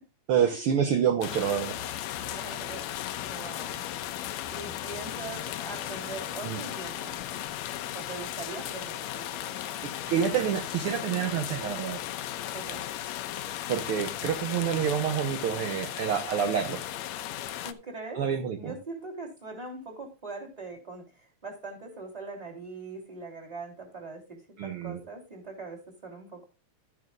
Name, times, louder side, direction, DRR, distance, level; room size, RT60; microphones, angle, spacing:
voice 1, 0.3-1.7 6.4-6.6 9.8-12.0 13.7-16.8 18.2-18.7 24.6-25.0, right 8 dB, 65° right, 6 dB, 1.5 m, -27 dB
sound 1, 1.2-17.7, left 12 dB, 75° left, 1.9 m, -36 dB
voice 2, 2.2-3.0 3.3-3.8 4.5-7.3 7.9-9.9 12.5-12.9 17.6-26.5, right 3 dB, 15° right, 0 dB, 3.0 m, -42 dB
12.5 x 10.5 x 2.4 m, 0.31 s
omnidirectional pair, 3.4 m